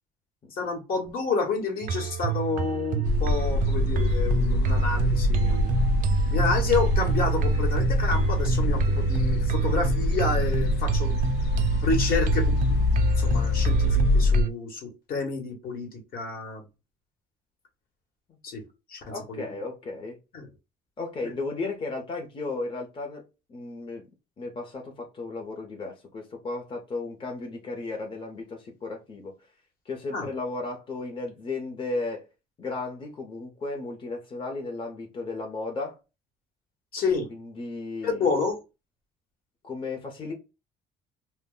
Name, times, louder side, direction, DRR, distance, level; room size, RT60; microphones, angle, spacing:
voice 1, 0.5-5.7 6.3-11.2 11.8-12.8 13.2-16.6 18.4-18.6 18.9-19.0 19.3-19.4 20.3-20.5 21.2-21.3 30.1-30.3 36.9-37.3 38.0-38.6, left 4 dB, 60° left, 1.1 m, -29 dB
sound 1, 1.8-14.5, right 4 dB, 55° right, 0.4 m, -29 dB
sound 2, 3.0-14.4, equal, 85° left, 0.5 m, -24 dB
voice 2, 19.1-20.2 21.0-23.2 23.5-24.1 24.4-29.3 29.9-32.3 32.6-36.0 37.3-38.3 39.6-40.3, left 3 dB, 30° left, 0.7 m, -34 dB
2.1 x 2.0 x 3.6 m
cardioid pair, 110°, 17 cm